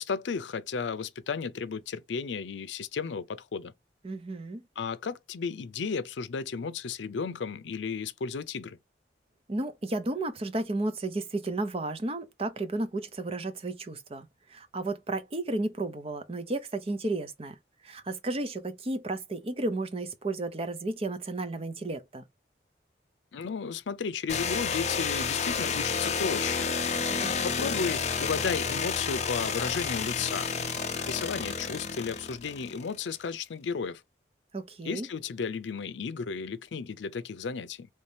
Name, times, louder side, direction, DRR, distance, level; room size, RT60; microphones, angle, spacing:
voice 1, 0.0-3.7 4.8-8.8 23.3-26.7 27.4-30.5 31.1-34.0 34.8-37.9, left 5 dB, 90° left, 0.5 m, -34 dB
voice 2, 4.0-4.6 9.5-17.6 17.8-22.2 27.1-27.5 34.5-35.1, right 2 dB, 35° right, 0.6 m, -33 dB
sound 1, 24.3-33.0, left 5 dB, 40° left, 0.5 m, -30 dB
3.2 x 2.7 x 3.3 m
head